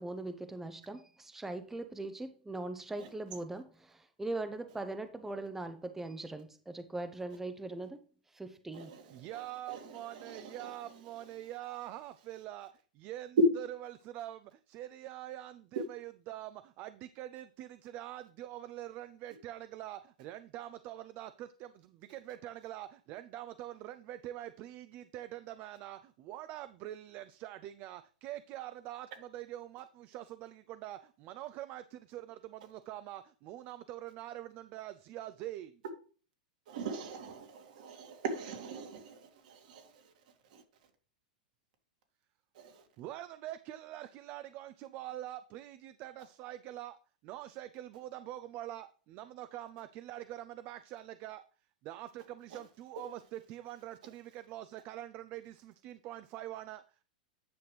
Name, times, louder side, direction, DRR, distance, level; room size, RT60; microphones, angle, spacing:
voice 1, 0.0-8.0 8.3-9.0, right 2 dB, 5° right, 0.7 m, -40 dB
voice 2, 9.1-35.7 42.8-47.0 47.2-51.4 51.8-57.0, right 13 dB, 45° right, 0.5 m, -45 dB
voice 3, 10.2-10.7 36.7-39.9 42.6-42.7, right 5 dB, 70° right, 2.2 m, -42 dB
9.5 x 5.9 x 3.3 m
hypercardioid pair, 115°, 4 cm